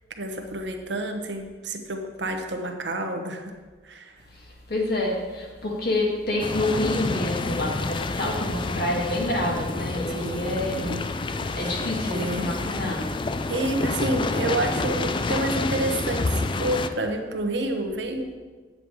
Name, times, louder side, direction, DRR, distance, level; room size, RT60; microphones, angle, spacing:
voice 1, 0.2-3.5 3.8-4.1 10.1-11.1 11.6-12.6 13.5-18.3, right 2 dB, 80° right, 4 dB, 1.0 m, -29 dB
voice 2, 4.7-11.0 11.5-13.2, left 1 dB, 60° left, -2 dB, 2.0 m, -27 dB
sound 1, 6.4-16.9, left 3 dB, 30° left, 0.4 m, -28 dB
8.9 x 7.8 x 4.7 m, 1.3 s
head